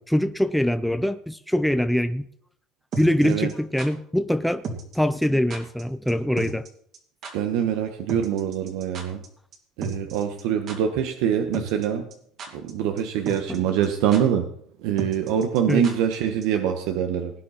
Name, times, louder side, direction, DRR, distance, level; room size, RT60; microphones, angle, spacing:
voice 1, 0.1-2.2 3.0-4.6 4.9-6.7 13.5-13.6 15.7-15.8, left 1 dB, ahead, 0.5 m, -23 dB
sound 1, 2.9-3.9 4.6-5.0 5.2-5.3 5.5-5.8 6.1-6.2 6.4-6.7 6.9-7.0 7.2-7.3 8.1-9.3 9.5-9.6 9.8-10.4 10.7-10.8 11.5-11.9 12.1-12.7 13.0-13.1 13.3-13.6 13.8-13.9 14.1-14.2 15.0-16.2 16.4-16.5, right 4 dB, 45° right, 2.8 m, -33 dB
voice 2, 7.3-9.2 9.8-12.1 12.5-14.5 14.8-17.3, right 9 dB, 80° right, 1.2 m, -24 dB
19.0 x 9.8 x 4.3 m
cardioid pair, 145°, 0 cm